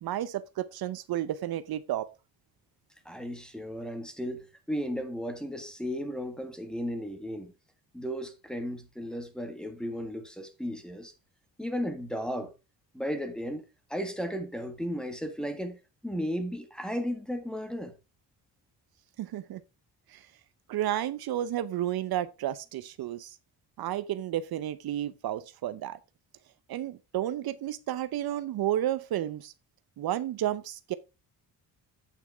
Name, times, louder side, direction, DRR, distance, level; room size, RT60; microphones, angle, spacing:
voice 1, 0.0-2.1 19.2-19.6 20.1-20.2 20.7-23.4 23.8-26.0 26.7-29.5 30.0-30.9, right 12 dB, 60° right, 0.7 m, -32 dB
voice 2, 3.0-7.5 7.9-11.1 11.6-12.5 12.9-13.6 13.9-17.9, equal, ahead, 1.6 m, -35 dB
9.1 x 8.6 x 3.5 m
cardioid pair, 155°, 41 cm